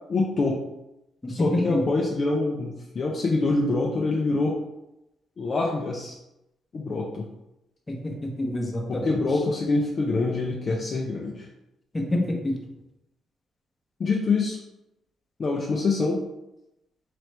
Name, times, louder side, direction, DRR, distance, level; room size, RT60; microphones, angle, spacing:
voice 1, 0.1-0.6 1.3-4.6 5.4-6.2 6.7-7.3 8.9-11.5 14.0-14.6 15.4-16.2, left 3 dB, 45° left, -1 dB, 0.5 m, -25 dB
voice 2, 1.2-1.8 7.9-9.1 11.9-12.6, left 1 dB, 20° left, 0 dB, 0.9 m, -27 dB
3.9 x 3.1 x 3.3 m, 0.89 s
cardioid pair, 90°, 0 cm